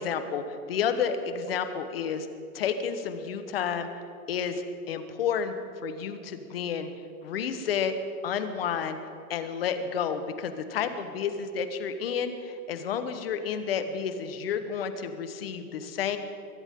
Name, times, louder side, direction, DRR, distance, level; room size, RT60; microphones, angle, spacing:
voice 1, 0.0-2.3 2.5-3.9 4.3-5.5 5.8-6.9 7.2-7.9 8.2-9.0 9.3-16.2, left 7 dB, 40° left, 9 dB, 1.3 m, -30 dB
23.0 x 16.0 x 3.8 m, 2.4 s
hypercardioid pair, 165°, 45 cm